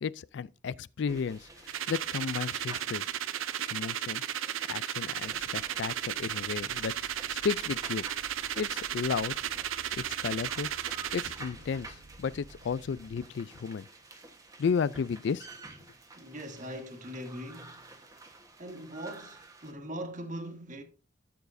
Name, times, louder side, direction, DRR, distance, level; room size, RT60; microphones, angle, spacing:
voice 1, 0.0-3.0 3.7-4.2 4.6-8.1 8.6-9.4 9.9-10.7 11.1-13.9 14.6-15.5, left 6 dB, 60° left, 0.3 m, -33 dB
sound 1, 1.1-19.7, right 2 dB, 20° right, 1.2 m, -51 dB
sound 2, 1.7-11.4, right 10 dB, 85° right, 0.5 m, -34 dB
sound 3, 5.2-13.3, right 2 dB, 60° right, 0.9 m, -54 dB
voice 2, 16.2-18.0 18.6-20.8, equal, 40° right, 1.6 m, -41 dB
13.5 x 7.0 x 2.6 m
head